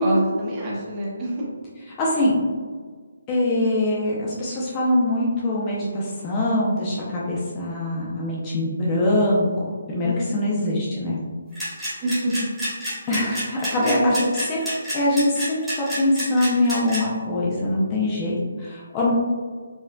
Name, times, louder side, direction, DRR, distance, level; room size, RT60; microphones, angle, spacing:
voice 1, 0.0-1.4 10.0-10.6 12.0-12.5 13.8-14.3, right 1 dB, 20° right, -5 dB, 0.8 m, -26 dB
voice 2, 2.0-2.4 3.3-11.2 13.1-14.6 14.9-19.1, left 1 dB, 20° left, -5 dB, 0.5 m, -23 dB
sound 1, 11.5-17.0, equal, ahead, 1.3 m, -29 dB
4.3 x 2.4 x 2.2 m, 1.5 s
hypercardioid pair, 160°, 0 cm